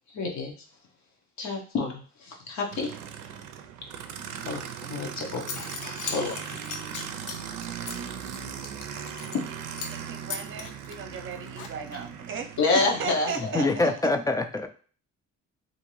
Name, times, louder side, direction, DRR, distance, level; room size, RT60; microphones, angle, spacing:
voice 1, 0.1-0.6 1.4-2.9 4.4-6.9 8.8-9.1 9.3-9.4 12.6-13.7, left 3 dB, 65° left, 1 dB, 0.8 m, -29 dB
Aircraft, 2.7-13.8, right 8 dB, 80° right, 0.5 m, -39 dB
Zipper (clothing) / Coin (dropping), 5.0-5.1 5.4-9.5 9.8-10.0 10.3-12.1, left 6 dB, 90° left, 0.6 m, -38 dB
voice 2, 9.9-12.5 12.7-13.6, right 6 dB, 40° right, 5 dB, 0.7 m, -36 dB
voice 3, 13.4-14.7, left 3 dB, 10° left, 6 dB, 0.3 m, -25 dB
2.6 x 2.5 x 3.0 m, 0.41 s
cardioid pair, 90°, 30 cm